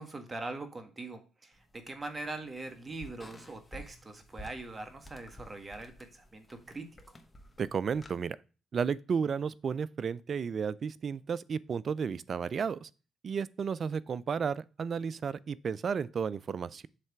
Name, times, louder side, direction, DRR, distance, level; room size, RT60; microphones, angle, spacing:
voice 1, 0.0-6.9, right 2 dB, 25° right, 1.5 m, -42 dB
sound 1, 1.5-8.2, equal, 25° left, 1.2 m, -53 dB
voice 2, 7.6-8.4 8.7-12.9 13.2-16.9, right 6 dB, 50° right, 0.4 m, -33 dB
7.6 x 3.3 x 6.0 m
cardioid pair, 75°, 0 cm